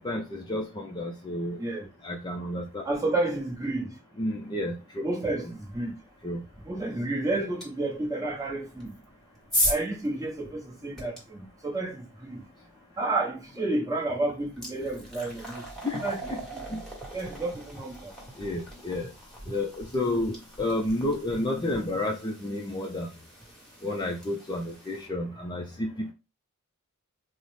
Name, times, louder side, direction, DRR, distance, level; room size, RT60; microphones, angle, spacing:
voice 1, 0.0-1.6 2.0-2.8 4.2-5.0 6.2-6.4 15.8-16.4 16.7-16.8 18.4-19.1 19.5-23.1 23.8-26.1, left 1 dB, 20° left, 0.4 m, -31 dB
voice 2, 2.8-3.9 5.0-5.5 5.7-5.9 6.7-8.9 9.7-12.4 13.0-15.6 16.0-16.7 17.1-18.1, right 2 dB, 15° right, 0.9 m, -30 dB
sound 1, 7.6-7.7 8.8-11.2 13.5-13.6 14.1-25.1, equal, ahead, 1.1 m, -37 dB
4.0 x 2.0 x 3.1 m
head